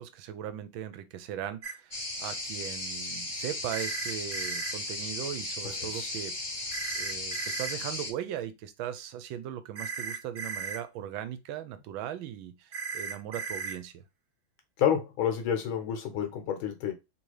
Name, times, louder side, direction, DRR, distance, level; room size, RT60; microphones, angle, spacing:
voice 1, 0.0-14.0, right 10 dB, 75° right, 1.4 m, -39 dB
sound 1, 1.6-1.7 3.7-4.7 6.7-7.8 9.8-10.8 12.7-13.8, right 5 dB, 60° right, 0.6 m, -36 dB
sound 2, 1.9-8.1, left 2 dB, 25° left, 0.5 m, -36 dB
voice 2, 5.6-6.1 14.8-16.9, left 9 dB, 80° left, 1.7 m, -29 dB
3.7 x 2.7 x 4.7 m
omnidirectional pair, 2.2 m